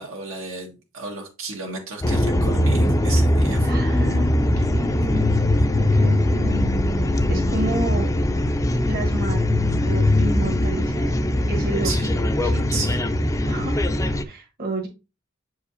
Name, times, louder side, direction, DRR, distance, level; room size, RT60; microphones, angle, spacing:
voice 1, 0.0-3.7 11.8-12.1 12.7-13.0, right 3 dB, 80° right, 1 dB, 1.7 m, -33 dB
sound 1, 2.0-14.2, left 1 dB, 15° left, 0.4 m, -21 dB
voice 2, 3.6-5.4 5.7-6.7 7.0-8.1 8.4-8.6 8.9-9.5 9.8-11.2 11.5-11.9 12.4-12.7 13.5-13.8 14.2-14.9, right 1 dB, 50° right, 1 dB, 1.4 m, -31 dB
7.4 x 4.8 x 2.7 m, 0.29 s
head